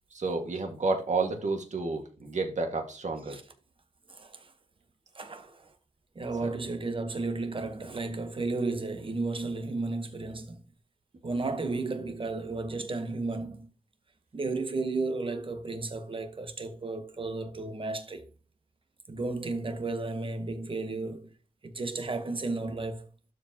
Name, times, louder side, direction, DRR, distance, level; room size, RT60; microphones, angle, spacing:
voice 1, 0.1-3.4 6.4-6.5, right 3 dB, 60° right, 1.8 m, -30 dB
voice 2, 4.1-4.5 5.1-5.7 6.1-10.6 11.2-13.7 14.3-18.3 19.1-21.3 21.6-23.1, right 3 dB, 40° right, 1.1 m, -33 dB
12.5 x 4.7 x 2.9 m
wide cardioid pair, 130°, 14 cm